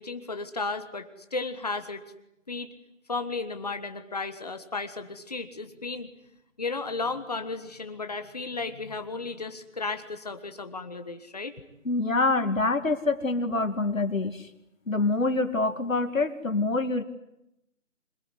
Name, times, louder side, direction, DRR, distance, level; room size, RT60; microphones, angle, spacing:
voice 1, 0.0-2.0 2.5-2.7 3.1-6.1 6.6-11.6, left 3 dB, 30° left, 9 dB, 1.5 m, -34 dB
voice 2, 11.8-14.5 14.9-17.0, left 3 dB, 85° left, 8 dB, 2.6 m, -26 dB
26.0 x 21.0 x 9.8 m, 0.85 s
figure-of-eight pair, 170°, 39 cm